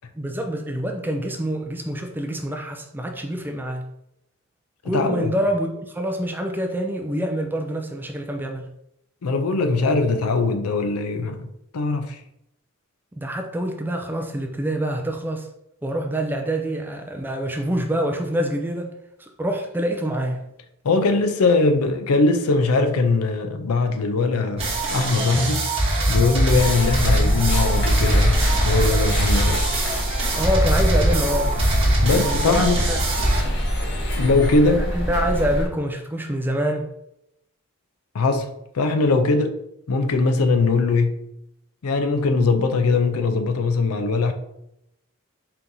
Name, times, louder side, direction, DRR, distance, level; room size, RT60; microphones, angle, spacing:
voice 1, 0.2-3.9 4.8-8.7 13.1-15.5 15.8-18.9 19.2-20.5 30.4-31.6 32.2-33.0 34.7-36.9, equal, 10° right, 0.3 m, -26 dB
voice 2, 4.9-5.3 9.2-12.2 20.8-25.7 26.1-29.6 32.0-32.9 34.2-34.9 38.1-38.5 38.7-39.6 39.9-41.2 41.8-44.3, left 3 dB, 85° left, 0.5 m, -21 dB
sound 1, 24.6-33.4, right 1 dB, 25° right, 1.2 m, -22 dB
sound 2, 26.5-35.7, equal, 55° left, 0.9 m, -24 dB
4.3 x 2.7 x 3.7 m
head